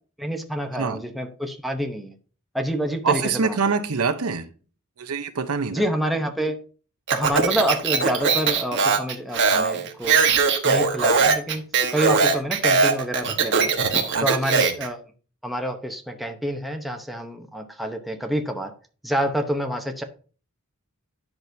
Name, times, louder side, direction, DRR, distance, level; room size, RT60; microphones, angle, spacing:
voice 1, 0.2-2.1 2.5-3.7 5.7-6.6 7.1-10.2 10.6-15.0 15.4-18.7 19.0-20.0, equal, ahead, 0.8 m, -28 dB
voice 2, 3.0-4.5 5.0-5.8 14.1-14.3 14.5-14.7, right 5 dB, 80° right, 0.8 m, -25 dB
Speech, 7.1-14.9, right 5 dB, 55° right, 1.2 m, -20 dB
10.5 x 6.1 x 2.7 m
head